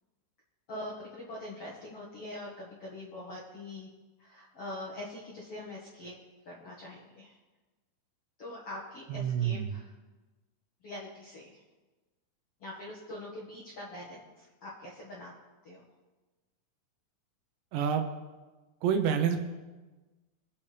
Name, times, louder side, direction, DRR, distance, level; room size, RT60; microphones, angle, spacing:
voice 1, 0.7-3.9 4.2-6.1 6.4-7.4 8.4-9.9 10.8-11.6 12.6-15.3 15.6-15.9, left 1 dB, 55° left, -5 dB, 1.6 m, -43 dB
voice 2, 9.1-9.8 17.7-18.1 18.8-19.4, right 8 dB, 75° right, 6 dB, 3.1 m, -28 dB
24.0 x 8.6 x 3.5 m, 1.2 s
omnidirectional pair, 5.3 m